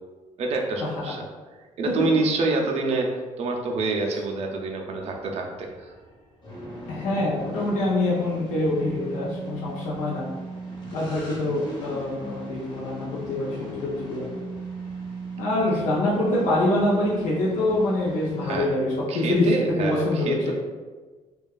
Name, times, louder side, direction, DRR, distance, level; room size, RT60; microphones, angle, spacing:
voice 1, 0.4-1.2 1.8-5.9 18.4-18.7 19.1-20.5, right 3 dB, 50° right, 1 dB, 0.4 m, -27 dB
sound 1, 4.9-18.7, right 2 dB, 35° left, 0.8 m, -38 dB
voice 2, 6.9-10.3 10.9-14.3 15.4-19.5 19.8-20.5, left 2 dB, 70° left, -6 dB, 0.5 m, -25 dB
2.7 x 2.3 x 2.3 m, 1.3 s
cardioid pair, 145°, 14 cm